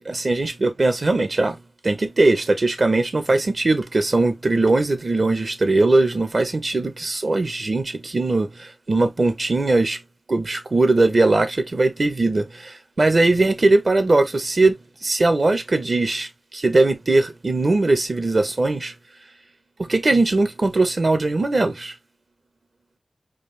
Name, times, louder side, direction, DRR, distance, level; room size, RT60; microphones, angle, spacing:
voice 1, 0.0-1.6 1.8-10.0 10.3-18.9 19.8-21.9, right 2 dB, 60° right, 0.9 m, -20 dB
3.8 x 2.6 x 3.1 m
cardioid pair, 40°, 0 cm